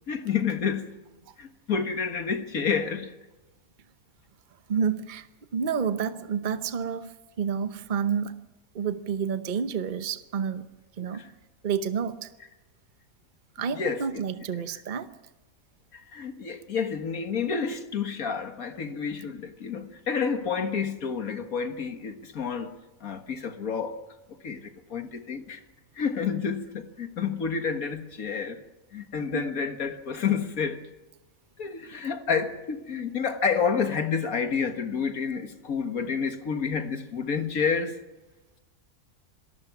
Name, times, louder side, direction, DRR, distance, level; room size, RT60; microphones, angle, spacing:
voice 1, 0.1-0.9 1.4-3.1 11.1-11.3 13.7-14.2 15.9-24.0 24.4-25.6 26.0-28.6 28.9-30.8 31.6-38.0, left 6 dB, 80° left, 2.0 m, -29 dB
voice 2, 4.7-5.3 5.5-8.4 8.7-10.6 11.0-11.3 11.6-12.3 13.6-15.1 29.3-29.4, right 7 dB, 40° right, 0.9 m, -29 dB
27.0 x 19.5 x 6.0 m
omnidirectional pair, 1.5 m